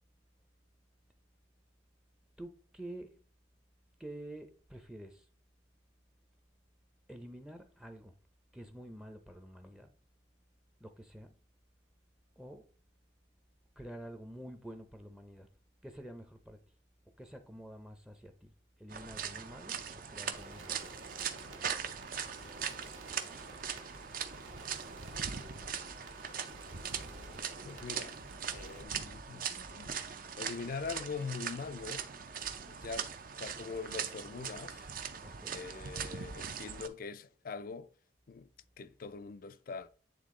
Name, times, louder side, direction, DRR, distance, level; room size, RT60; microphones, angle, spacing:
voice 1, 2.4-3.2 4.0-5.3 7.1-8.1 8.5-9.9 10.8-11.3 12.4-12.7 13.8-15.5 15.8-16.6 17.2-18.5 18.8-19.8 20.1-20.8 23.5-23.6 33.1-33.2 35.2-35.6, right 1 dB, 5° right, 0.6 m, -48 dB
sound 1, 18.9-36.9, right 7 dB, 45° right, 0.6 m, -41 dB
sound 2, 20.3-28.8, right 2 dB, 85° right, 1.6 m, -52 dB
voice 2, 25.1-25.7 27.6-28.2 28.5-29.9 30.4-32.0 32.7-33.1 33.4-34.9 35.5-37.9 38.3-38.5 38.8-39.9, left 5 dB, 45° left, 0.4 m, -43 dB
9.3 x 3.7 x 3.7 m
head